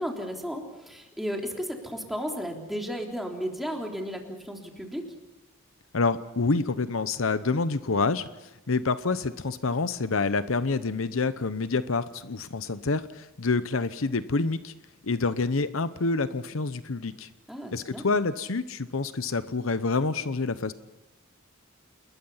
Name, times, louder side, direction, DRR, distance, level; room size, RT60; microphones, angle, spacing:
voice 1, 0.0-5.0 17.5-18.0, equal, ahead, 1 dB, 3.6 m, -34 dB
voice 2, 5.9-14.7 15.0-17.3 17.7-20.7, left 3 dB, 75° left, 13 dB, 0.9 m, -27 dB
29.0 x 21.0 x 5.7 m, 1.0 s
head